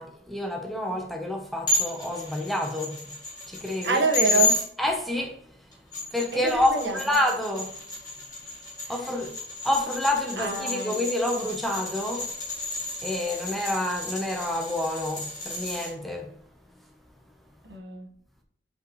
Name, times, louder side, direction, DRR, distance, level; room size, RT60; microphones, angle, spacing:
voice 1, 0.0-3.2 3.5-4.0 4.8-5.4 6.1-7.7 8.9-9.3 9.6-12.3 13.0-16.3, left 1 dB, ahead, 0.8 m, -28 dB
sound 1, 1.7-4.6 5.7-15.9, left 3 dB, 20° left, 2.9 m, -32 dB
voice 2, 3.8-4.6 6.3-7.1 8.8-8.9 10.4-11.0 17.7-18.1, right 4 dB, 75° right, 1.5 m, -27 dB
8.0 x 5.2 x 3.1 m
head